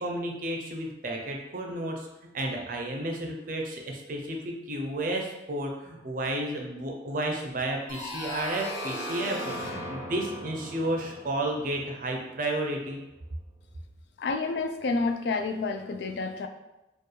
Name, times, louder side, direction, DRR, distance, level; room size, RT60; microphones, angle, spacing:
voice 1, 0.0-2.1 2.3-13.0, right 1 dB, 45° right, 1 dB, 0.5 m, -32 dB
sound 1, 7.9-12.5, left 1 dB, 85° left, 0.9 m, -38 dB
voice 2, 14.2-16.5, left 3 dB, 60° left, 6 dB, 0.3 m, -29 dB
4.5 x 2.3 x 3.2 m, 0.99 s
head